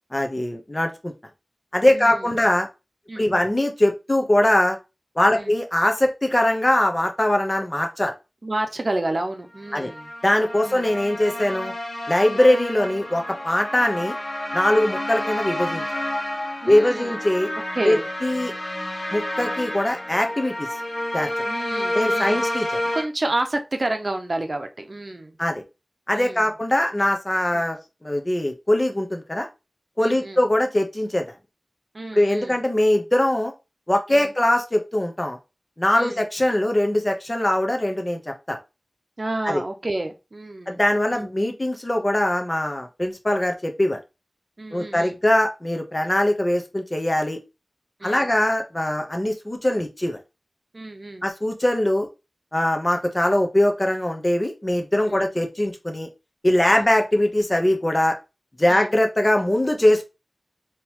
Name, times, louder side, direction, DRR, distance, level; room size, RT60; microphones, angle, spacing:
voice 1, 0.1-1.1 1.7-2.7 3.2-4.8 5.2-8.1 9.7-9.9 10.2-11.7 12.1-14.1 14.5-15.8 16.7-17.5 17.8-18.5 19.1-20.7 21.1-21.3 21.9-22.8 25.4-25.6 26.1-29.5 30.0-31.2 32.1-33.5 33.9-35.4 35.8-38.6 39.4-39.6 40.7-44.0 44.7-47.4 48.0-50.2 51.2-52.1 52.5-56.1 56.4-58.1 58.6-60.0, left 1 dB, 30° left, 4 dB, 0.9 m, -21 dB
voice 2, 1.9-2.3 3.1-3.5 5.3-5.5 8.4-10.1 10.6-10.9 12.3-12.4 14.7-14.9 16.6-17.1 17.7-18.1 21.4-22.6 22.9-25.4 26.1-26.5 27.5-27.6 30.0-30.4 31.9-32.6 34.1-34.3 35.9-36.2 39.2-40.8 41.1-41.3 44.6-45.2 48.0-48.3 50.7-51.3 55.1-55.3 56.7-56.9 58.7-58.9, right 2 dB, 55° right, 5 dB, 0.7 m, -30 dB
sound 1, 9.6-23.0, left 1 dB, 80° left, 1.3 m, -30 dB
3.8 x 3.0 x 2.9 m, 0.27 s
wide cardioid pair, 45°, 0 cm